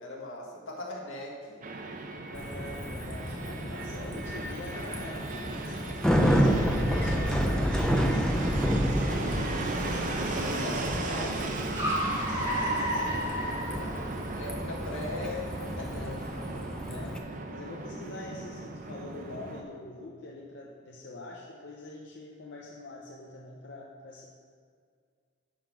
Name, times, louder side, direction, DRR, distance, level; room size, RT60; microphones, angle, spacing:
voice 1, 0.0-1.6 4.0-4.1 6.9-7.5 9.2-9.3 10.5-11.3 12.5-13.6 14.3-16.3, left 2 dB, 80° left, -2 dB, 1.7 m, -40 dB
Fixed-wing aircraft airplane, 1.6-19.6, right 2 dB, 40° right, 0.7 m, -37 dB
voice 2, 2.3-11.7 12.1-14.0 16.8-17.2 17.5-24.3, left 2 dB, 60° left, -3 dB, 0.8 m, -45 dB
Bicycle, 2.4-17.2, equal, 5° left, 0.4 m, -30 dB
Car, 4.9-14.4, equal, 15° right, 2.0 m, -36 dB
11.5 x 3.9 x 5.8 m, 2.1 s
head